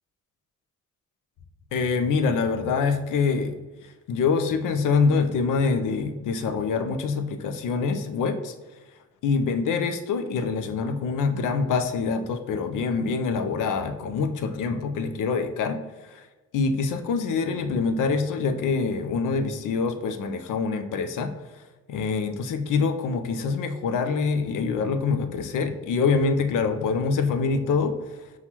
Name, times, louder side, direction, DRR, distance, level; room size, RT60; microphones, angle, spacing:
voice 1, 1.7-3.6 4.1-8.5 9.2-16.3 16.5-21.3 21.9-28.0, left 4 dB, 75° left, 8 dB, 0.6 m, -25 dB
5.8 x 2.4 x 2.8 m, 1.2 s
cardioid pair, 70°, 32 cm